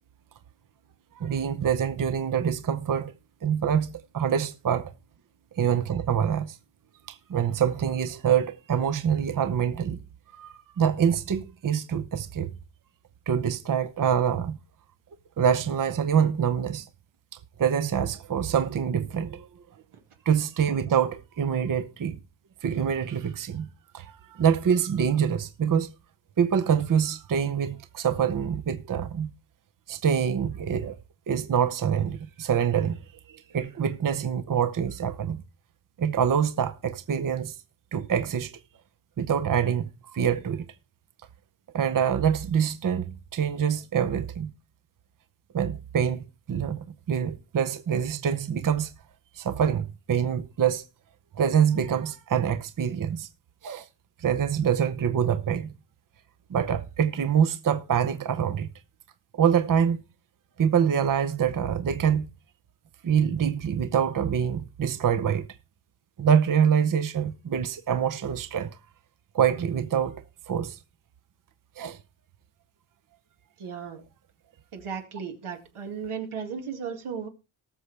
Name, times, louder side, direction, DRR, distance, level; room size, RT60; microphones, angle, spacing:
voice 1, 1.1-3.1 3.4-4.9 5.5-6.6 7.1-10.0 10.3-12.5 13.3-14.6 15.4-16.9 17.6-19.5 20.3-22.2 22.6-23.7 23.9-25.9 26.4-29.3 29.9-31.0 31.3-33.0 33.3-35.4 36.0-37.6 37.9-38.5 39.2-40.6 41.7-44.5 45.5-48.9 49.3-50.8 51.3-53.3 53.6-53.9 54.2-55.7 56.5-58.7 59.3-60.0 60.6-62.3 63.0-65.5 66.2-68.8 69.3-70.8 71.8-72.0, right 8 dB, 40° right, 0.8 m, -25 dB
voice 2, 73.6-74.0 74.7-77.3, right 6 dB, 85° right, 2.3 m, -35 dB
19.0 x 6.8 x 3.3 m
wide cardioid pair, 110°, 49 cm